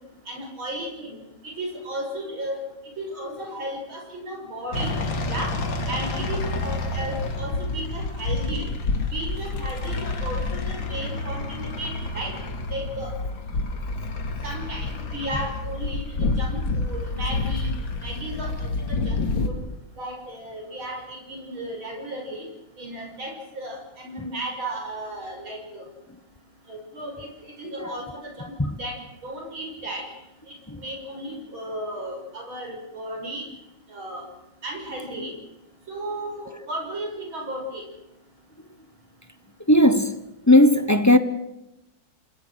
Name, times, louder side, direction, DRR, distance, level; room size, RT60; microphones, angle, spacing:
voice 1, 0.3-1.2 1.4-2.7 3.0-4.9 5.2-5.6 5.9-8.7 9.1-12.3 12.7-13.1 14.4-17.7 18.0-19.6 20.0-22.4 22.8-25.8 26.7-27.3 27.6-30.0 30.5-33.5 33.9-34.3 34.6-35.3 35.9-37.8, right 1 dB, 90° right, 6.8 m, -34 dB
sound 1, 4.7-19.5, left 3 dB, 75° left, 3.0 m, -28 dB
voice 2, 39.7-40.2 40.5-41.2, left 1 dB, 15° left, 0.6 m, -16 dB
28.5 x 20.0 x 6.4 m
omnidirectional pair, 2.1 m